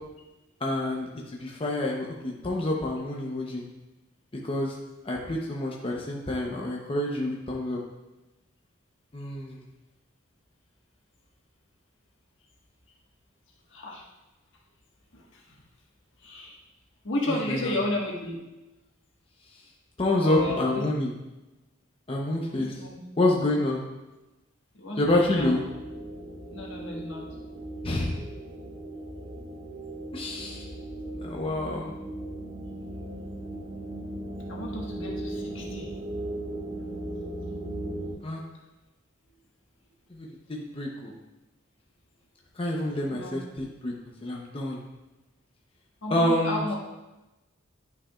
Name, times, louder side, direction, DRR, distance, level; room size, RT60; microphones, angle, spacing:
voice 1, 0.6-1.1 1.4-3.6 4.4-4.7 5.0-7.8 9.1-9.6 17.5-17.8 20.0-21.1 22.1-22.8 23.2-23.8 25.0-25.6 27.8-28.2 30.1-30.7 31.2-31.9 38.2-38.4 40.1-41.1 42.6-43.9 44.2-44.8 46.1-46.7, left 1 dB, 30° left, -1 dB, 0.7 m, -27 dB
voice 2, 13.7-14.0 15.1-15.5 16.2-16.6 17.0-18.4 20.1-20.8 22.5-23.0 24.7-25.5 26.5-27.2 34.5-35.9 43.1-43.3 46.0-46.7, left 1 dB, 70° left, -2 dB, 1.4 m, -33 dB
sound 1, 25.2-38.1, right 1 dB, 60° right, 1.7 m, -37 dB
9.8 x 5.8 x 2.3 m, 1.0 s
head